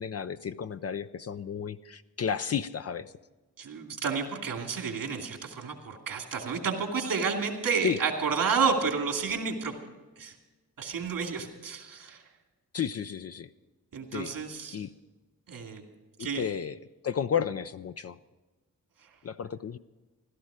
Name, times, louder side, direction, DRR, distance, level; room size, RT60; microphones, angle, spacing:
voice 1, 0.0-3.1 7.8-8.0 12.7-13.5 14.1-14.3 14.7-14.9 16.2-16.8 17.0-18.2 19.2-19.8, left 7 dB, 50° left, 11 dB, 0.5 m, -32 dB
voice 2, 3.6-9.7 10.2-10.3 10.8-12.2 13.9-14.8 15.5-15.8 16.2-16.4, right 5 dB, 90° right, 3 dB, 2.5 m, -30 dB
16.0 x 12.5 x 4.9 m, 1.2 s
wide cardioid pair, 95°, 33 cm